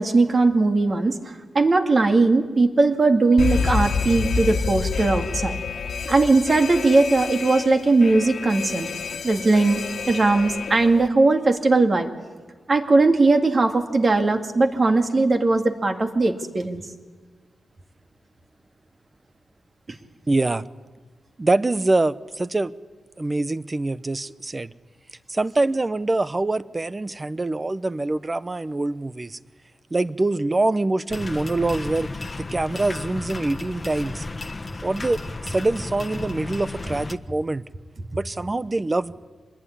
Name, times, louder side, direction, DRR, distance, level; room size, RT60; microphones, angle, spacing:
voice 1, 0.0-5.6 6.1-8.9 9.2-12.1 12.7-16.8, right 3 dB, 40° right, 5 dB, 2.3 m, -19 dB
Alarm, 3.4-11.1, left 5 dB, 70° left, 1.6 m, -28 dB
voice 2, 20.3-20.6 21.4-22.7 23.2-24.7 25.3-29.4 29.9-32.1 32.4-34.2 34.8-37.7 38.1-39.1, right 2 dB, 25° right, 15 dB, 0.8 m, -24 dB
sound 1, 31.1-37.2, left 3 dB, 30° left, 1.4 m, -34 dB
25.5 x 21.0 x 9.9 m, 1.4 s
wide cardioid pair, 100°, 0 cm